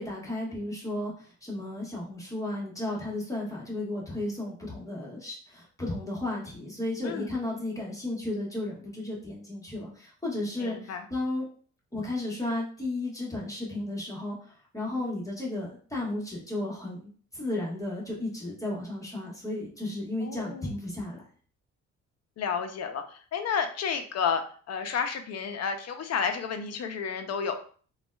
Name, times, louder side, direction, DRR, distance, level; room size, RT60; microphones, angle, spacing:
voice 1, 0.0-11.5 11.9-14.4 14.7-21.2, left 2 dB, 10° left, -4 dB, 1.2 m, -34 dB
voice 2, 10.6-11.0 20.2-20.7 22.4-27.6, left 6 dB, 60° left, 7 dB, 0.6 m, -31 dB
3.9 x 2.3 x 2.2 m, 0.43 s
cardioid pair, 90°, 30 cm